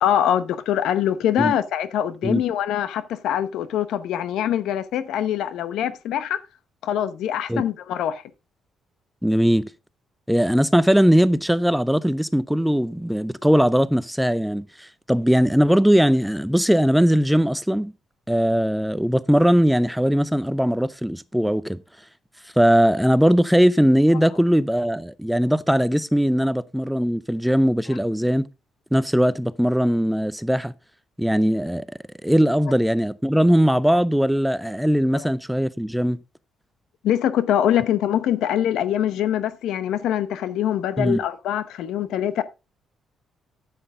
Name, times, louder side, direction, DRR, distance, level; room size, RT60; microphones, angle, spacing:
voice 1, 0.0-6.4 6.8-8.2 35.1-35.3 37.0-42.4, left 10 dB, 85° left, 0.8 m, -23 dB
voice 2, 9.2-9.7 10.3-17.9 18.3-21.8 22.6-28.5 28.9-30.7 31.2-31.9 32.2-36.2 41.0-41.2, equal, 5° right, 0.5 m, -20 dB
9.6 x 7.9 x 3.7 m
cardioid pair, 90°, 0 cm